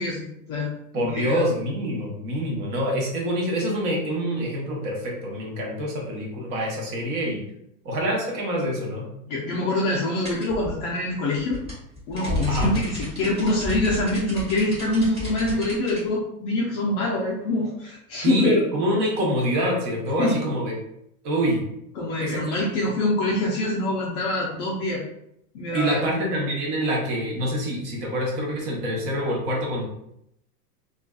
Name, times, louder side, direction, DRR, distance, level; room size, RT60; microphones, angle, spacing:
voice 1, 0.0-1.4 9.2-11.6 12.1-18.6 20.2-20.4 22.0-25.0 25.5-26.0, left 2 dB, 30° left, -4 dB, 0.4 m, -25 dB
voice 2, 0.9-7.4 7.8-9.1 12.5-12.7 18.2-20.7 21.2-21.6 22.2-22.6 25.7-29.8, equal, 40° right, -1 dB, 1.0 m, -26 dB
sound 1, 10.2-16.0, equal, 10° right, 1.2 m, -32 dB
2.5 x 2.4 x 2.3 m, 0.77 s
hypercardioid pair, 120°, 49 cm